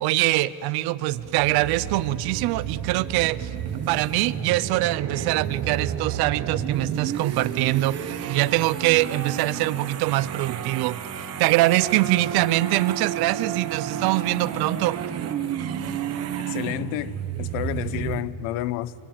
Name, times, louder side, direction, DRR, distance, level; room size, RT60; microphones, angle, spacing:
voice 1, 0.0-3.5 3.9-8.0 8.3-11.0 11.4-15.0, right 17 dB, 50° right, 0.7 m, -23 dB
sound 1, 1.1-18.2, right 9 dB, 30° right, 1.2 m, -31 dB
voice 2, 16.5-18.9, left 14 dB, 80° left, 0.9 m, -30 dB
25.5 x 23.0 x 8.8 m
cardioid pair, 180°, 48 cm